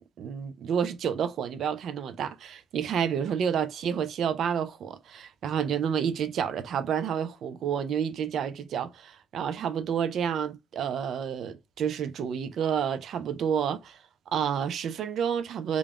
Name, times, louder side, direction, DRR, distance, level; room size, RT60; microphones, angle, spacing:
voice 1, 0.2-14.0 14.3-15.8, right 8 dB, 70° right, 0.4 m, -29 dB
2.3 x 2.1 x 3.4 m
cardioid pair, 90°, 0 cm